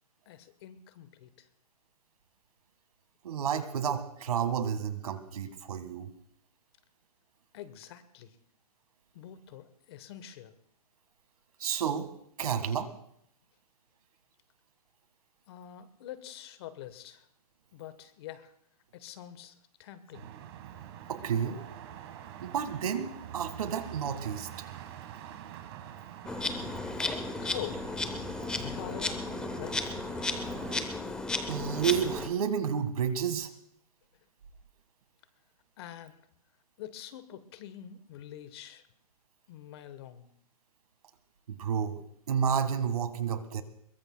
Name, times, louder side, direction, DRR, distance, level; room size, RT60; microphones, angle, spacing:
voice 1, 0.3-1.5 7.5-8.4 9.1-10.5 15.5-17.3 17.7-18.5 18.9-20.3 27.4-28.0 28.5-29.9 35.8-36.3 36.8-38.8 39.5-40.3, left 11 dB, 40° left, 13 dB, 1.2 m, -45 dB
voice 2, 3.2-6.1 11.6-12.1 12.4-12.9 21.1-21.6 22.4-24.5 31.5-33.5 41.5-42.0 42.3-43.6, right 7 dB, 70° right, 10 dB, 1.8 m, -30 dB
sound 1, 20.1-30.8, right 10 dB, 40° right, 1.6 m, -45 dB
Insect, 26.3-32.3, left 3 dB, 5° left, 0.7 m, -34 dB
22.5 x 22.0 x 2.3 m, 0.70 s
hypercardioid pair, 155°, 20 cm